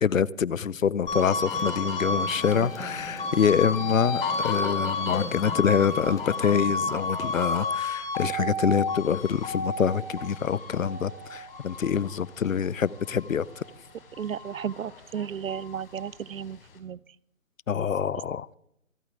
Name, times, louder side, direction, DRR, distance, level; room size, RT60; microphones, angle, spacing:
voice 1, 0.0-13.6 17.7-18.5, left 7 dB, 75° left, 22 dB, 0.8 m, -26 dB
sound 1, 1.0-7.0, left 2 dB, 10° left, 1.8 m, -41 dB
sound 2, 1.1-13.7 14.1-15.8, left 3 dB, 45° left, 4.2 m, -32 dB
voice 2, 2.6-3.2 14.2-17.0, right 8 dB, 80° right, 25 dB, 0.6 m, -34 dB
27.0 x 9.0 x 3.8 m, 0.75 s
hypercardioid pair, 155°, 40 cm